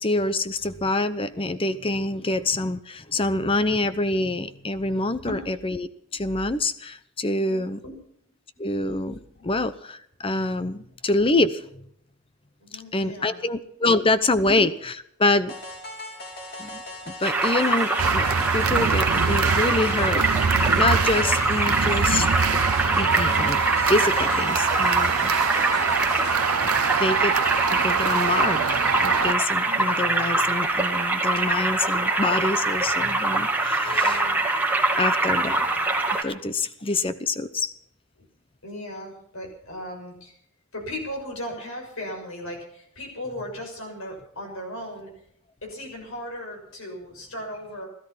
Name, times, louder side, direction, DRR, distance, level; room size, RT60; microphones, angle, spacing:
voice 1, 0.0-7.8 8.6-11.9 12.7-15.5 16.6-16.8 17.1-18.3 18.5-20.2 20.7-22.3 22.5-23.6 23.9-25.6 26.6-26.7 27.0-27.4 27.7-34.2 35.0-35.6 36.2-37.7, left 2 dB, 25° left, 13 dB, 0.8 m, -26 dB
voice 2, 7.4-8.0 8.6-8.7 9.3-9.5 12.6-13.4 14.0-14.1 29.5-29.8 33.8-34.3 35.7-35.8 38.2-38.3 38.6-40.4 40.7-45.1 45.6-47.9, equal, 65° left, 2 dB, 6.3 m, -37 dB
sound 1, 15.5-26.5, equal, 50° left, 5.4 m, -38 dB
sound 2, 17.2-36.2, right 2 dB, 10° right, 2.4 m, -24 dB
sound 3, 18.0-29.3, right 7 dB, 75° right, 0.6 m, -25 dB
17.0 x 13.5 x 5.8 m, 0.70 s
head